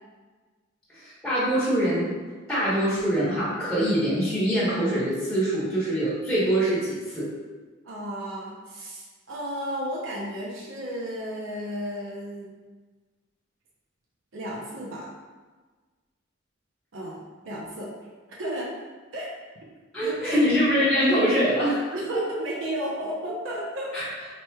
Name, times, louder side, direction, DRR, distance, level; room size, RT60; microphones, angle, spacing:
voice 1, 0.9-2.1 2.5-7.3 19.9-21.8 22.1-22.2 23.9-24.0, equal, 5° left, -10 dB, 1.0 m, -24 dB
voice 2, 7.8-12.5 14.3-15.1 16.9-17.9 18.3-18.7 19.1-19.3 20.0-20.4 21.9-23.9, equal, 70° right, -4 dB, 0.7 m, -33 dB
4.2 x 3.1 x 2.2 m, 1.4 s
head